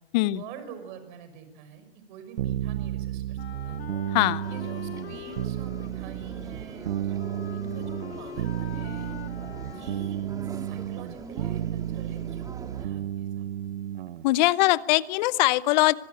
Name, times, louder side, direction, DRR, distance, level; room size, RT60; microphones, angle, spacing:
voice 1, 0.3-4.1 4.5-9.2 9.7-10.2 10.5-13.5, right 6 dB, 50° right, 10 dB, 6.0 m, -46 dB
sound 1, 2.4-14.2, right 11 dB, 80° right, 0.8 m, -32 dB
Wind instrument woodwind instrument, 3.4-10.4, left 10 dB, 85° left, 1.1 m, -44 dB
voice 2, 4.1-4.4 14.2-15.9, left 18 dB, 45° left, 19 dB, 0.9 m, -21 dB
sound 2, 4.4-12.9, right 4 dB, 10° right, 1.9 m, -43 dB
24.5 x 19.5 x 9.1 m, 1.0 s
hypercardioid pair, 130°, 30 cm